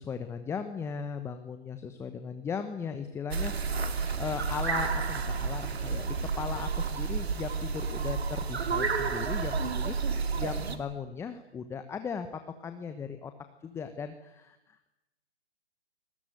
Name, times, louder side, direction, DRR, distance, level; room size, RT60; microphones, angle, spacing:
voice 1, 0.0-13.3 13.6-14.9, left 6 dB, 10° left, 9 dB, 1.1 m, -38 dB
sound 1, 3.3-10.8, right 5 dB, 65° right, 3.3 m, -31 dB
29.5 x 21.0 x 9.2 m, 0.97 s
figure-of-eight pair, 135°, 33 cm